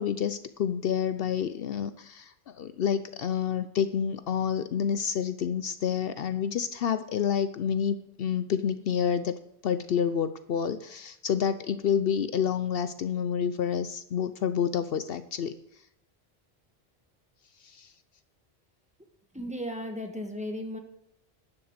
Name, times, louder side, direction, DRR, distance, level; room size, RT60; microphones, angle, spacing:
voice 1, 0.0-9.4 9.6-15.5 17.6-17.9, left 8 dB, 65° left, 12 dB, 0.8 m, -29 dB
voice 2, 19.3-20.8, equal, 5° right, 4 dB, 1.5 m, -35 dB
11.5 x 7.2 x 8.0 m, 0.78 s
omnidirectional pair, 1.1 m